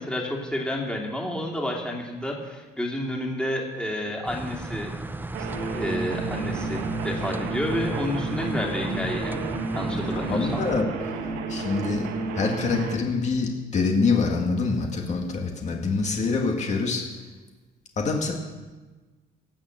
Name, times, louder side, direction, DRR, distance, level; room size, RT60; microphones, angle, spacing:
voice 1, 0.0-4.9 5.4-5.5 5.7-9.4 9.7-10.7, left 1 dB, 5° left, -1 dB, 2.8 m, -30 dB
sound 1, 4.2-10.8, right 2 dB, 10° right, 0.7 m, -35 dB
sound 2, 5.3-13.0, right 4 dB, 85° right, 1.8 m, -31 dB
voice 2, 10.1-10.9 11.5-12.1 12.3-17.0 18.0-18.3, left 4 dB, 45° left, 1 dB, 2.2 m, -25 dB
17.5 x 7.1 x 7.7 m, 1.3 s
cardioid pair, 110°, 17 cm